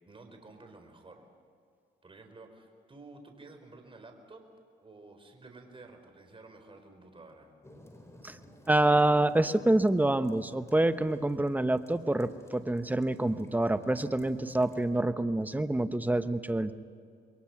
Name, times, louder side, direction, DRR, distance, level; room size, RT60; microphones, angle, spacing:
voice 1, 0.1-1.2 2.0-4.4 4.8-7.5, right 3 dB, 25° right, 5 dB, 4.5 m, -52 dB
sound 1, 7.6-14.9, left 1 dB, 15° left, 4.5 m, -54 dB
voice 2, 8.7-16.7, right 1 dB, 10° right, 11 dB, 1.0 m, -27 dB
27.5 x 22.0 x 6.0 m, 2.4 s
cardioid pair, 90°, 20 cm